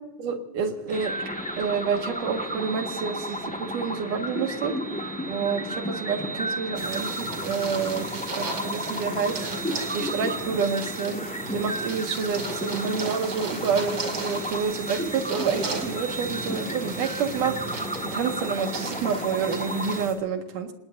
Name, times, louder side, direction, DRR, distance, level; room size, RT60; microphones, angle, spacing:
voice 1, 0.2-1.1 1.6-9.4 9.9-11.2 11.5-17.8 18.1-20.7, right 6 dB, 80° right, 5 dB, 3.2 m, -28 dB
sound 1, 0.9-20.1, equal, 5° left, 0.8 m, -33 dB
sound 2, 6.8-20.1, right 4 dB, 40° right, 2.8 m, -36 dB
28.0 x 19.0 x 2.6 m, 1.0 s
omnidirectional pair, 3.6 m